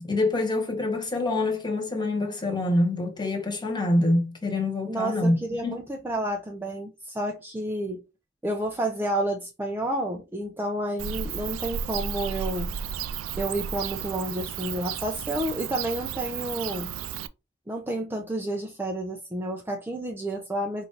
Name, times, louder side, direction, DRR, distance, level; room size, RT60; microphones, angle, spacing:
voice 1, 0.0-5.4 5.6-5.8, left 2 dB, 20° left, 1.2 m, -25 dB
voice 2, 4.9-8.0 8.4-12.7 13.4-16.9 17.7-20.8, right 1 dB, 10° right, 0.5 m, -30 dB
Bird / Cricket, 11.0-17.3, right 8 dB, 80° right, 0.3 m, -33 dB
4.4 x 2.7 x 3.8 m
head